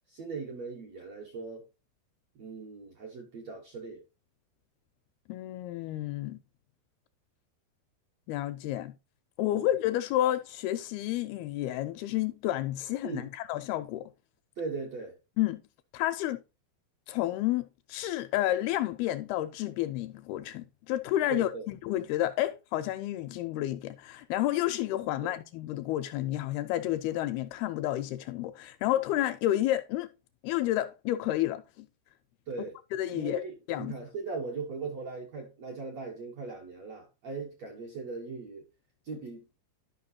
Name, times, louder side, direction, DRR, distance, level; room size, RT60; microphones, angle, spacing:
voice 1, 0.1-1.7 2.3-4.0 9.5-9.7 13.0-13.3 14.6-15.2 21.3-21.6 25.2-25.3 32.5-32.8 33.1-38.6 39.0-39.4, right 4 dB, 65° right, 1.7 m, -39 dB
voice 2, 5.3-6.4 8.3-8.9 9.4-14.1 15.4-15.6 15.9-16.4 17.1-30.1 30.4-31.9 32.9-33.4 33.7-34.0, left 14 dB, 80° left, 2.3 m, -30 dB
12.0 x 5.4 x 2.8 m
omnidirectional pair, 4.7 m